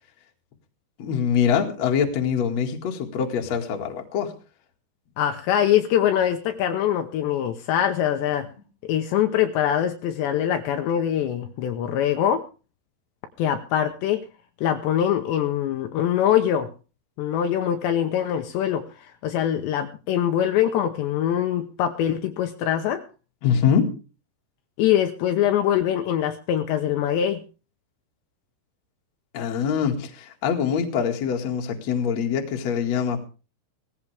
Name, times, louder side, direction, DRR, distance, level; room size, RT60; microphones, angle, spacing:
voice 1, 1.0-4.3 23.4-23.9 29.3-33.3, left 7 dB, 45° left, 2 dB, 2.5 m, -24 dB
voice 2, 5.2-8.5 8.8-12.4 13.4-14.2 14.6-16.7 17.2-23.0 24.8-27.4, left 10 dB, 75° left, 6 dB, 2.9 m, -23 dB
18.0 x 15.5 x 3.4 m, 0.35 s
omnidirectional pair, 5.4 m